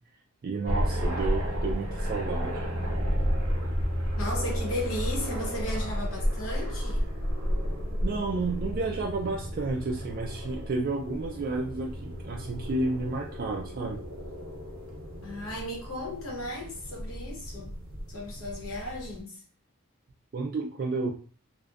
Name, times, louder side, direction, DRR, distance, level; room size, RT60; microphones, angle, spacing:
voice 1, 0.4-2.7 8.0-14.0 20.3-21.1, right 3 dB, 45° right, 0.3 m, -31 dB
sound 1, 0.6-19.2, equal, 70° right, 0.7 m, -32 dB
voice 2, 4.2-7.0 15.2-17.8 18.1-19.4, left 1 dB, 75° left, 0.9 m, -35 dB
2.6 x 2.1 x 2.3 m
head